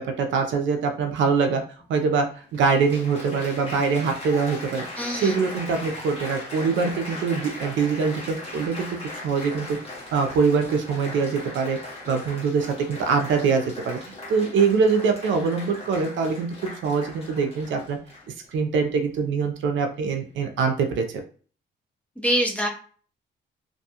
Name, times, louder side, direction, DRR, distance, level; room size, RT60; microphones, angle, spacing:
voice 1, 0.0-1.6 1.9-4.8 5.1-9.0 9.2-9.8 10.1-11.8 12.1-18.0 18.5-21.2, right 5 dB, 70° right, 4 dB, 0.5 m, -23 dB
Applause, 1.8-1.9 2.5-18.5 19.2-19.5, left 2 dB, 30° left, 1.1 m, -38 dB
voice 2, 5.0-5.4 22.2-22.7, equal, 5° left, -1 dB, 0.7 m, -24 dB
2.6 x 2.2 x 2.8 m, 0.42 s
cardioid pair, 90°, 20 cm